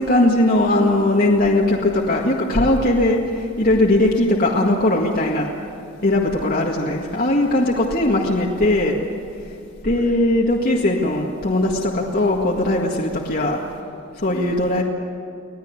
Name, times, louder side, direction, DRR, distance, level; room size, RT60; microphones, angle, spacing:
voice 1, 0.0-5.5 6.0-9.0 9.8-13.6 14.2-14.8, left 1 dB, 45° left, -2 dB, 1.9 m, -19 dB
25.5 x 18.0 x 9.7 m, 2.5 s
head